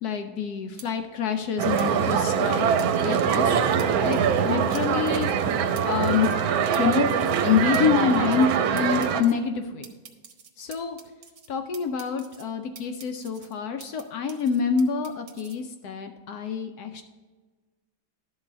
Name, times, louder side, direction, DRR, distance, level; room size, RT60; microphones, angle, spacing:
voice 1, 0.0-2.8 3.0-3.5 4.0-4.2 4.4-5.3 5.8-6.3 6.8-7.1 7.4-9.9 10.6-11.0 11.5-17.0, left 6 dB, 70° left, 6 dB, 0.9 m, -26 dB
sound 1, 0.8-0.9 1.8-1.9 2.8-3.4 3.8-3.9 4.1-4.4 4.7-4.8 5.1-5.4 5.8-5.9 6.1-6.4 6.7-6.8 7.1-7.4 7.7-7.8 8.1-8.5 8.8-9.3 9.8-11.5 11.7-12.4 12.8-14.0 14.3-15.6, right 6 dB, 55° right, 1.1 m, -46 dB
sound 2, 1.6-9.2, right 7 dB, 85° right, 1.4 m, -23 dB
12.0 x 4.0 x 5.1 m, 1.3 s
omnidirectional pair, 2.2 m